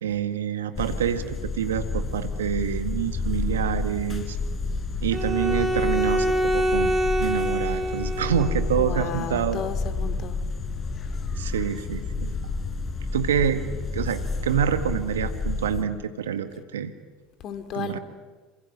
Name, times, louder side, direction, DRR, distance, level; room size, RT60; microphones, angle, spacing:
voice 1, 0.0-4.4 5.0-9.6 11.4-12.3 13.1-13.6 13.9-16.9 17.7-18.0, right 8 dB, 80° right, 9 dB, 1.8 m, -27 dB
sound 1, 0.8-15.8, left 3 dB, 30° left, 4.4 m, -30 dB
Bowed string instrument, 5.1-8.6, right 1 dB, 20° right, 3.7 m, -25 dB
voice 2, 8.8-10.4 17.4-18.0, left 8 dB, 50° left, 10 dB, 2.5 m, -33 dB
27.5 x 25.5 x 7.4 m, 1.4 s
hypercardioid pair, 70°, 0 cm